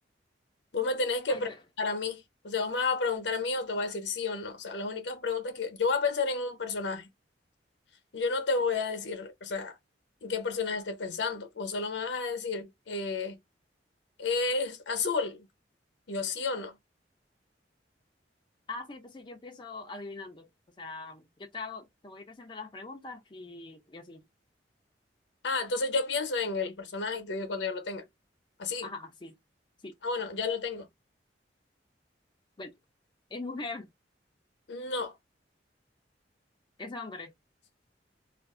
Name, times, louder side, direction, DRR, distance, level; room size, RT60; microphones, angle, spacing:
voice 1, 0.7-1.5 1.8-7.1 8.1-9.8 10.2-13.4 14.2-15.5 16.1-16.8 25.4-28.0 28.6-28.9 30.0-30.9 34.7-35.1, left 4 dB, 80° left, 0.8 m, -31 dB
voice 2, 1.3-1.6 18.7-20.5 20.8-24.2 28.8-29.3 29.8-29.9 32.6-32.7 33.3-33.9 36.8-37.3, left 3 dB, 25° left, 0.5 m, -41 dB
2.5 x 2.5 x 3.6 m
head